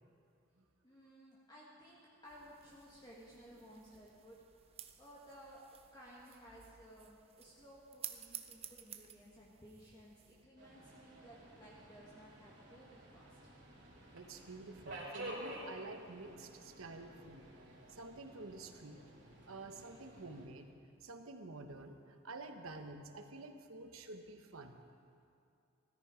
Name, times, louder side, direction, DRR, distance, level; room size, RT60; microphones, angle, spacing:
voice 1, 0.8-5.6 5.9-13.4, equal, 20° left, -5 dB, 1.6 m, -58 dB
sound 1, 2.2-10.4, right 10 dB, 30° right, 0.6 m, -53 dB
Subway metro underground, 10.6-20.5, right 1 dB, 55° right, 3.3 m, -51 dB
voice 2, 14.1-17.5 17.9-19.0 19.4-20.7 21.0-24.8, right 2 dB, 80° right, 6 dB, 1.1 m, -50 dB
16.5 x 13.5 x 5.0 m, 2.6 s
head